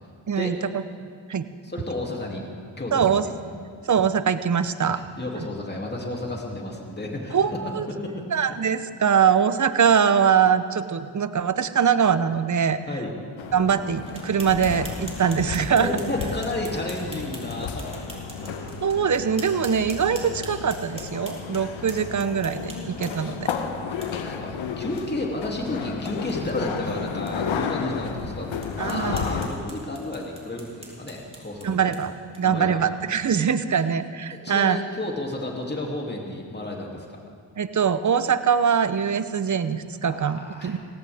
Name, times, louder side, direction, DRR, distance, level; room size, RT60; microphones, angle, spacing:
voice 1, 0.3-0.8 1.3-1.5 2.9-3.3 3.8-5.0 7.3-7.9 8.3-12.8 13.5-15.9 18.8-23.5 28.8-29.2 31.6-32.1 32.4-34.8 37.6-40.8, right 7 dB, 40° right, 12 dB, 0.8 m, -22 dB
voice 2, 1.6-2.4 2.8-3.3 4.9-8.2 12.9-13.1 15.8-18.1 18.5-18.8 23.0-23.1 23.4-28.5 28.8-31.9 32.4-32.8 33.7-33.8 34.3-37.2 40.1-40.8, left 2 dB, 20° left, -1 dB, 2.8 m, -32 dB
sound 1, 13.4-29.5, left 6 dB, 75° left, 1.1 m, -33 dB
sound 2, 14.1-23.4 24.0-24.1 24.5-24.6 25.0-25.1 25.4-25.5 25.9-26.1 26.6-26.7 27.3-27.4 27.9-28.0 28.6-32.6, right 1 dB, 10° right, 4.0 m, -44 dB
17.5 x 16.0 x 3.6 m, 2.2 s
supercardioid pair, 50°, 47 cm